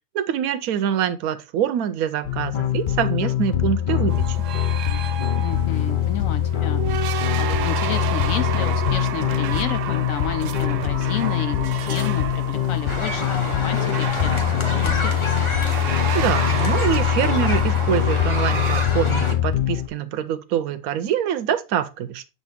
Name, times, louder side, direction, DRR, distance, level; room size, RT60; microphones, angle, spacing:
voice 1, 0.1-4.4 16.1-22.3, right 9 dB, 85° right, 1.1 m, -25 dB
sound 1, 2.2-19.9, left 11 dB, 50° left, 0.7 m, -23 dB
sound 2, 4.1-18.9, right 9 dB, 70° right, 0.9 m, -31 dB
voice 2, 5.4-6.9 7.4-13.2 13.6-15.5, left 9 dB, 70° left, 1.1 m, -31 dB
sound 3, 12.9-19.3, left 1 dB, 25° left, 0.9 m, -29 dB
6.8 x 4.2 x 3.5 m
omnidirectional pair, 1.5 m